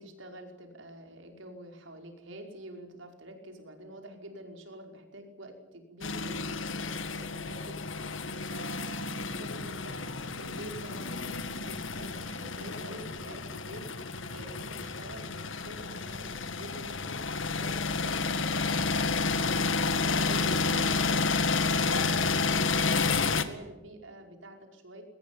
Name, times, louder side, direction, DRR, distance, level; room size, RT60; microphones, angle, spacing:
voice 1, 0.0-25.0, right 1 dB, 80° right, 4 dB, 5.3 m, -47 dB
sound 1, 6.0-23.4, left 4 dB, 85° left, 1.9 m, -30 dB
22.5 x 20.0 x 9.0 m, 1.0 s
head